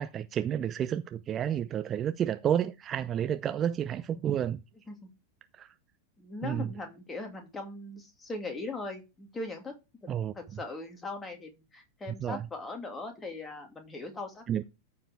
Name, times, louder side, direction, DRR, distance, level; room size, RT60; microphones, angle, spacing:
voice 1, 0.0-4.6 5.5-5.7 6.4-6.7 10.1-10.3 12.2-12.4 14.5-14.6, right 9 dB, 25° right, 0.5 m, -30 dB
voice 2, 6.2-9.7 10.3-14.6, left 2 dB, 15° left, 2.3 m, -40 dB
14.0 x 4.8 x 3.5 m
figure-of-eight pair, 90°, 0 cm